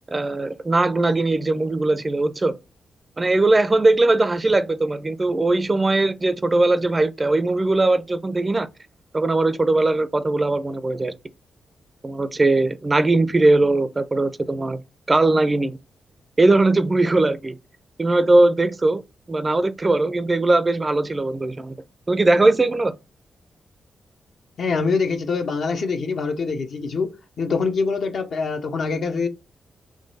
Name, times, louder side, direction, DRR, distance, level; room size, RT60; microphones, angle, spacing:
voice 1, 0.1-2.5 3.2-8.7 9.1-11.1 12.0-14.8 15.1-15.8 16.4-17.6 18.0-19.0 19.3-21.7 22.1-22.9, right 2 dB, 25° right, 0.4 m, -20 dB
voice 2, 24.6-29.3, left 4 dB, 65° left, 0.7 m, -24 dB
3.7 x 3.0 x 4.0 m
cardioid pair, 100°, 0 cm